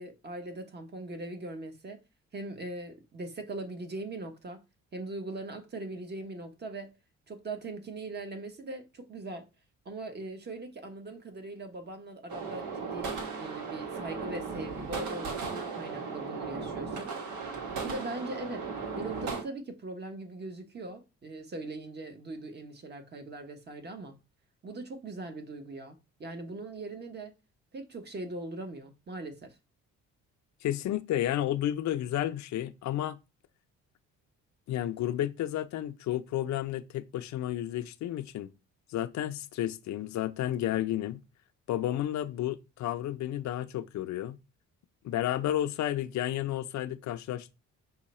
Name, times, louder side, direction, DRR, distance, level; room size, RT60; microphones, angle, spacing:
voice 1, 0.0-2.0 2.3-4.6 4.9-6.9 7.3-9.5 9.8-17.1 17.8-18.7 19.0-24.2 24.6-27.3 27.7-29.5, right 2 dB, 35° right, 1.1 m, -40 dB
sound 1, 12.3-19.4, right 5 dB, 80° right, 1.1 m, -36 dB
voice 2, 30.6-33.2 34.7-38.5 38.9-41.2 41.7-44.4 45.0-47.5, left 12 dB, 65° left, 0.5 m, -32 dB
5.5 x 2.2 x 4.2 m
cardioid pair, 90°, 30 cm